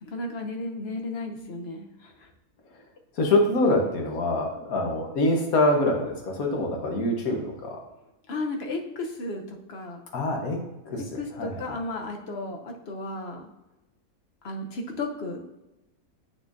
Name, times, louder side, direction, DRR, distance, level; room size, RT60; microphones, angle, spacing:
voice 1, 0.0-2.3 8.3-10.0 11.0-13.5 14.4-15.4, left 2 dB, 50° left, 3 dB, 1.0 m, -34 dB
voice 2, 3.2-7.8 10.1-10.6 10.9-11.0 11.4-11.6, left 1 dB, 75° left, 1 dB, 1.7 m, -24 dB
8.9 x 6.0 x 2.6 m, 0.97 s
omnidirectional pair, 1.5 m